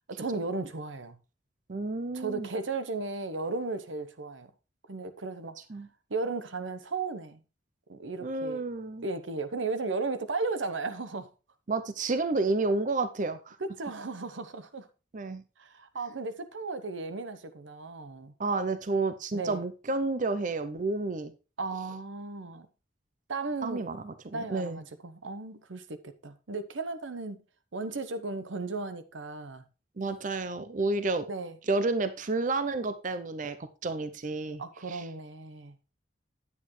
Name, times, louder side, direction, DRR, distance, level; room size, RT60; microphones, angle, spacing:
voice 1, 0.1-1.2 2.1-4.5 4.9-5.6 6.1-7.4 7.9-8.7 9.0-11.3 13.6-14.9 15.6-18.3 19.3-19.6 21.6-22.7 23.3-23.9 24.3-27.4 27.7-29.6 31.3-31.6 34.6-35.7, right 3 dB, 85° right, 0.9 m, -35 dB
voice 2, 1.7-2.5 5.7-5.9 8.2-9.1 11.7-13.6 15.1-15.4 18.4-21.3 23.6-24.8 30.0-31.2 31.7-33.6 33.8-34.6 34.9-35.1, right 3 dB, 45° right, 0.6 m, -30 dB
9.8 x 8.4 x 3.1 m
head